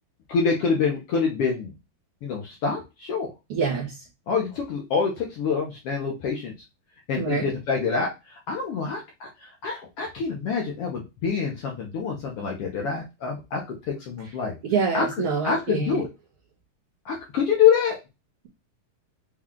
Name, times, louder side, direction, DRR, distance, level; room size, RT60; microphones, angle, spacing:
voice 1, 0.3-1.7 2.2-3.3 4.3-6.5 7.1-8.1 8.5-9.3 9.6-13.6 13.9-14.5 14.9-16.1 17.0-18.0, left 6 dB, 75° left, -1 dB, 1.4 m, -26 dB
voice 2, 3.5-4.0 7.2-7.5 14.6-16.0, right 5 dB, 80° right, -3 dB, 1.3 m, -26 dB
6.0 x 2.4 x 3.6 m, 0.25 s
omnidirectional pair, 3.8 m